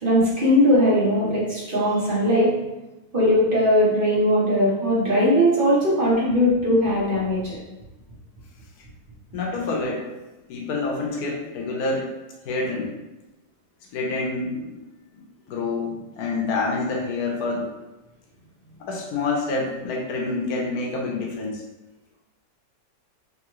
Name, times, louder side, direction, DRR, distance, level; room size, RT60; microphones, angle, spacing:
voice 1, 0.0-2.5 3.1-7.6, equal, 35° right, -8 dB, 1.1 m, -19 dB
voice 2, 9.3-10.1 10.5-12.1 12.4-12.9 13.9-14.8 15.5-17.7 18.8-21.6, left 3 dB, 65° left, -1 dB, 1.2 m, -27 dB
3.6 x 3.1 x 3.0 m, 1.0 s
omnidirectional pair, 1.9 m